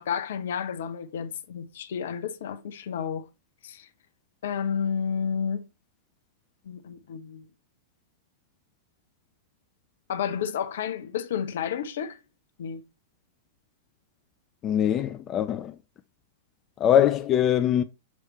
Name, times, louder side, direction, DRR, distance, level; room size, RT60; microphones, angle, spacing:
voice 1, 0.0-3.2 3.6-3.9 4.4-5.6 6.6-7.4 10.1-12.2 12.6-12.8, left 7 dB, 60° left, 0.8 m, -31 dB
voice 2, 14.6-15.7 16.8-17.8, left 10 dB, 30° left, 0.5 m, -22 dB
7.3 x 3.2 x 4.2 m
figure-of-eight pair, 100°, 0 cm